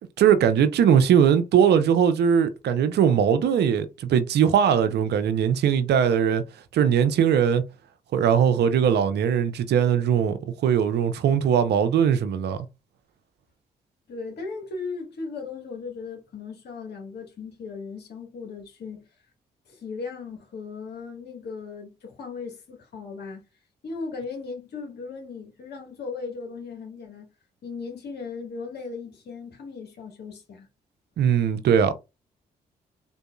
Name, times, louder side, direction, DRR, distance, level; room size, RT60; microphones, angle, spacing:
voice 1, 0.2-6.4 6.7-7.6 8.1-12.7 31.2-31.9, right 8 dB, 70° right, 0.5 m, -20 dB
voice 2, 14.1-19.1 19.7-23.4 23.8-27.3 27.6-30.7, left 4 dB, 65° left, 1.5 m, -37 dB
3.7 x 2.6 x 2.2 m
supercardioid pair, 50°, 18 cm